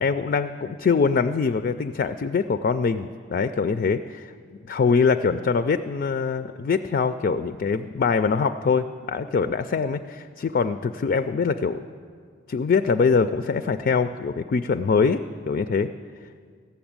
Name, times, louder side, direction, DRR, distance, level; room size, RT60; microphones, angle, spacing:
voice 1, 0.0-4.3 4.7-11.8 12.5-15.9, left 5 dB, 50° left, 11 dB, 0.3 m, -23 dB
14.0 x 7.0 x 8.8 m, 2.1 s
head